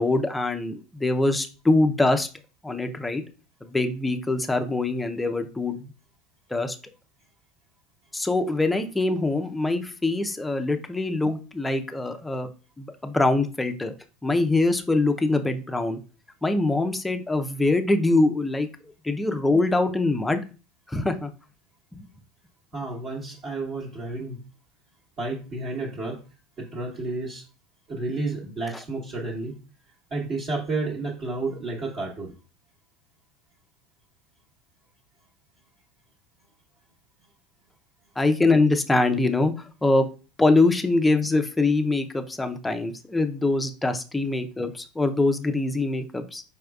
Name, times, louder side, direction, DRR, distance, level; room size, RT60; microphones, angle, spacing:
voice 1, 0.0-2.3 2.6-3.2 3.6-5.9 6.5-6.8 8.1-12.5 12.8-13.9 14.2-16.0 16.4-20.4 20.9-21.3 21.9-22.1 38.2-39.5 39.8-40.1 40.4-46.4, left 2 dB, 10° left, 6 dB, 0.5 m, -23 dB
voice 2, 22.7-24.4 25.2-26.2 26.6-27.4 27.9-29.6 30.1-32.3, right 3 dB, 35° right, -5 dB, 1.1 m, -31 dB
5.0 x 4.2 x 2.3 m, 0.34 s
supercardioid pair, 135°, 0 cm